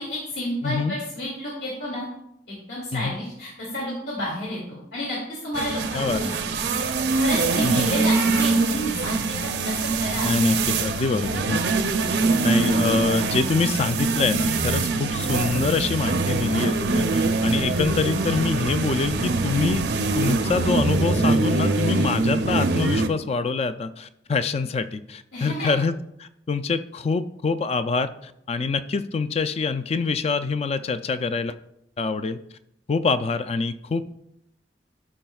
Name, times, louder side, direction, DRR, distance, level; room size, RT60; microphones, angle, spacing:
voice 1, 0.0-2.1 2.5-6.6 7.2-9.4 9.6-10.3 25.3-25.7, equal, 65° left, -6 dB, 2.4 m, -31 dB
voice 2, 0.6-1.0 2.9-3.2 5.9-6.2 7.6-7.9 10.2-11.8 12.4-19.8 20.1-25.9 26.2-31.5 32.0-32.4 32.9-34.1, left 4 dB, 35° left, 12 dB, 0.4 m, -25 dB
sound 1, 5.5-23.1, right 3 dB, 70° right, 0.6 m, -23 dB
13.0 x 5.7 x 2.3 m, 0.79 s
head